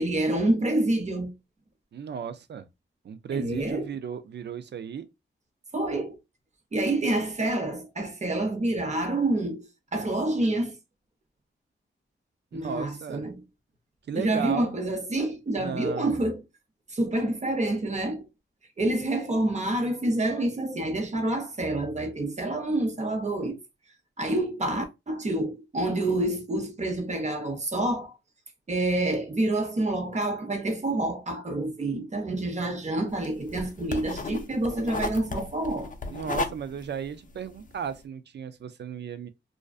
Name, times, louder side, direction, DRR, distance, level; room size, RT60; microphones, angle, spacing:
voice 1, 0.0-1.3 3.3-3.9 5.7-6.2 6.7-10.8 12.5-13.4 14.1-16.4 16.9-18.3 18.8-23.6 24.2-28.1 28.7-35.9, right 1 dB, 35° right, 0.7 m, -27 dB
voice 2, 1.9-2.7 3.0-5.1 12.5-13.2 14.1-14.8 15.6-16.3 36.1-39.3, right 7 dB, 60° right, 0.4 m, -35 dB
sound 1, 33.1-38.0, left 3 dB, 40° left, 0.4 m, -35 dB
2.5 x 2.1 x 2.3 m
cardioid pair, 80°, 21 cm